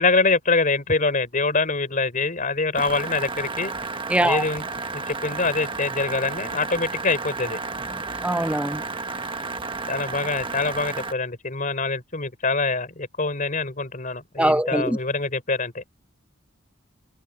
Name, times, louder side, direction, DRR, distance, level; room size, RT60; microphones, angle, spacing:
voice 1, 0.0-3.7 4.2-4.7 4.9-7.6 9.9-15.8, left 3 dB, 40° left, 4.5 m, -24 dB
sound 1, 2.7-11.1, right 3 dB, 25° right, 1.2 m, -32 dB
voice 2, 4.1-4.4 8.2-8.8 14.4-15.0, right 1 dB, 5° right, 0.6 m, -22 dB
head